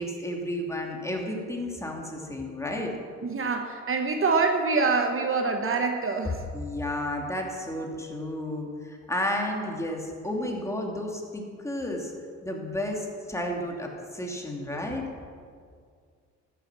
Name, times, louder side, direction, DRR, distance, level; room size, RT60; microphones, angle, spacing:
voice 1, 0.0-2.9 6.5-12.1 12.4-15.1, left 1 dB, 10° left, 0 dB, 2.7 m, -32 dB
voice 2, 3.2-6.4, right 4 dB, 45° right, 4 dB, 1.2 m, -25 dB
13.5 x 10.0 x 6.2 m, 2.1 s
cardioid pair, 90°, 30 cm